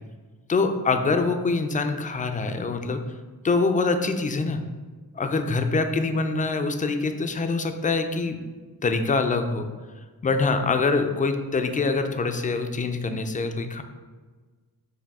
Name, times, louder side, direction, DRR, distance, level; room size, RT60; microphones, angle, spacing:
voice 1, 0.5-3.0 3.4-4.6 5.2-8.4 8.8-9.7 10.2-13.8, left 3 dB, 25° left, 7 dB, 0.3 m, -24 dB
4.7 x 2.3 x 3.5 m, 1.4 s
cardioid pair, 70°, 36 cm